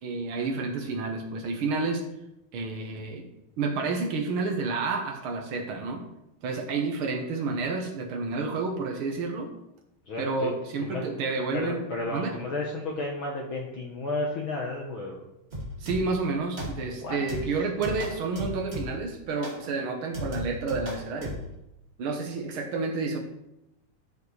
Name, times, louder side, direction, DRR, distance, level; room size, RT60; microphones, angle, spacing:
voice 1, 0.0-2.0 2.5-3.3 3.6-6.0 6.4-9.5 10.2-11.8 12.1-12.4 15.8-21.4 22.0-23.2, right 3 dB, 70° right, 1 dB, 1.2 m, -30 dB
voice 2, 10.1-10.5 10.8-11.1 11.5-15.2 16.9-17.2 17.5-17.6, left 2 dB, 80° left, -1 dB, 1.1 m, -32 dB
sound 1, 15.5-16.2 16.6-17.0 17.3-19.1 19.4-19.7 20.1-21.5, equal, 25° right, 1.9 m, -36 dB
12.0 x 7.1 x 3.3 m, 0.88 s
omnidirectional pair, 3.9 m